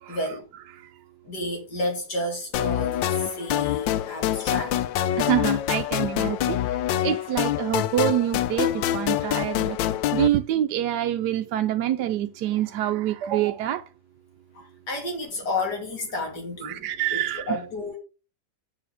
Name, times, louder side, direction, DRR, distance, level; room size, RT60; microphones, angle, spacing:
voice 1, 0.1-0.4 1.2-4.8 14.5-16.8 17.1-17.2 17.5-18.0, left 2 dB, 60° left, 3.2 m, -31 dB
sound 1, 2.5-10.3, left 12 dB, 85° left, 1.3 m, -25 dB
voice 2, 5.2-9.8 10.1-13.9 16.6-17.6, right 12 dB, 75° right, 1.1 m, -26 dB
7.7 x 6.2 x 4.9 m
omnidirectional pair, 2.0 m